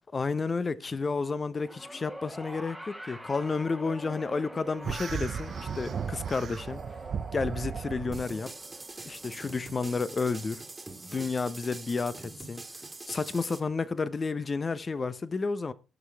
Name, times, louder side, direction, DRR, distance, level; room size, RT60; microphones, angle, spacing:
voice 1, 0.1-6.8 7.3-8.5 9.0-10.6 11.1-12.6 13.1-15.7, left 4 dB, 35° left, 0.9 m, -31 dB
sound 1, 1.6-12.0 13.1-13.2, equal, 5° left, 1.5 m, -46 dB
sound 2, 4.8-8.3, right 7 dB, 55° right, 0.7 m, -35 dB
sound 3, 8.1-13.6, right 3 dB, 20° right, 1.8 m, -44 dB
18.5 x 6.4 x 3.4 m
hypercardioid pair, 50°, 0 cm